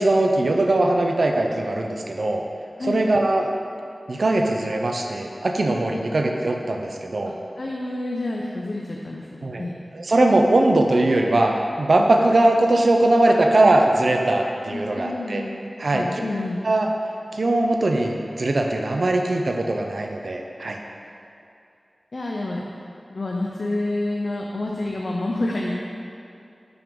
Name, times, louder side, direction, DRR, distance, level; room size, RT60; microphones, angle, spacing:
voice 1, 0.0-2.4 2.9-3.5 4.1-7.3 9.4-9.7 9.9-15.4 15.8-16.2 16.6-16.9 17.3-20.8, right 2 dB, 75° right, 2 dB, 0.6 m, -20 dB
voice 2, 7.6-9.8 13.3-13.4 14.7-16.6 22.1-22.7 23.1-25.7, left 2 dB, 60° left, -2 dB, 0.6 m, -28 dB
5.9 x 5.3 x 5.3 m, 2.7 s
wide cardioid pair, 80°, 0 cm